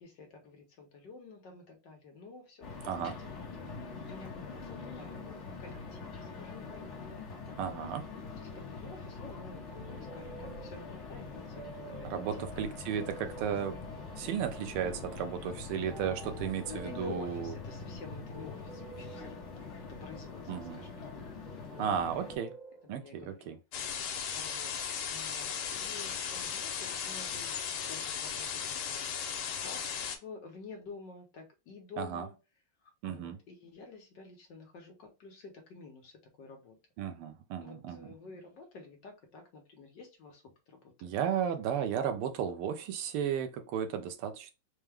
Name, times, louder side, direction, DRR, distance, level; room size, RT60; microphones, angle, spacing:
voice 1, 0.0-7.8 8.4-13.1 16.7-19.6 19.9-21.1 21.7-21.9 22.8-23.4 23.9-24.7 25.1-27.6 27.9-29.1 29.6-32.3 32.8-36.8 37.6-41.1, left 4 dB, 60° left, 1.4 m, -50 dB
sound 1, 2.6-22.4, left 4 dB, 45° left, 1.0 m, -44 dB
voice 2, 7.6-8.0 12.0-13.8 14.2-17.5 20.5-20.8 21.8-22.5 22.9-23.6 32.0-32.3 33.0-33.4 37.0-38.1 41.0-44.5, right 8 dB, 80° right, 1.6 m, -34 dB
sound 2, 8.8-23.1, right 5 dB, 65° right, 1.4 m, -52 dB
sound 3, 23.7-30.2, left 7 dB, 80° left, 1.6 m, -36 dB
4.6 x 2.2 x 3.4 m
omnidirectional pair, 2.4 m